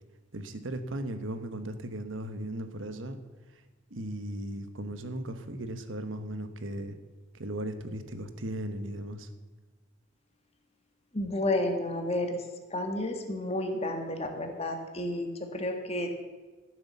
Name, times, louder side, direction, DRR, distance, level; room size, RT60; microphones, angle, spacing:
voice 1, 0.3-3.2 3.9-6.9 7.4-9.2, right 1 dB, 80° right, 9 dB, 1.2 m, -37 dB
voice 2, 11.1-12.4 12.7-16.3, left 1 dB, 30° left, 4 dB, 1.7 m, -31 dB
13.5 x 7.8 x 7.0 m, 1.3 s
head